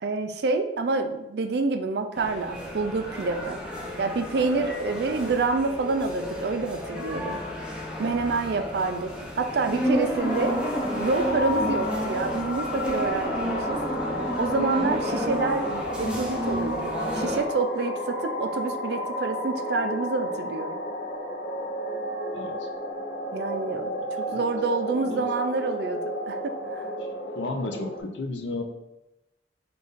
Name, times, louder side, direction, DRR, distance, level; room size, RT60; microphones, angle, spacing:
voice 1, 0.0-3.6 4.0-7.4 8.0-10.6 11.0-13.8 14.4-20.8 23.3-26.9, right 3 dB, 65° right, 7 dB, 0.4 m, -28 dB
sound 1, 2.2-17.4, equal, 5° right, 0.7 m, -32 dB
sound 2, 10.2-28.0, equal, 50° left, 0.7 m, -32 dB
voice 2, 27.4-28.6, left 2 dB, 85° left, 4 dB, 0.6 m, -33 dB
5.3 x 2.6 x 3.8 m, 0.96 s
head